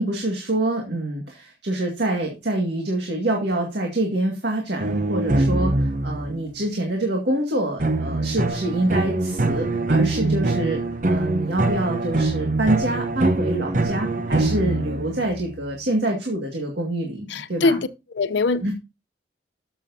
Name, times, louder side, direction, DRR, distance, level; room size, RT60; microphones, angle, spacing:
voice 1, 0.0-10.8 11.1-17.8 18.6-18.7, right 1 dB, 75° right, 2.0 m, -26 dB
sound 1, 4.8-6.4 7.8-15.5, right 2 dB, 45° right, 0.8 m, -23 dB
voice 2, 17.3-17.9 18.1-18.7, left 3 dB, 90° left, 0.6 m, -22 dB
12.5 x 7.1 x 2.7 m
head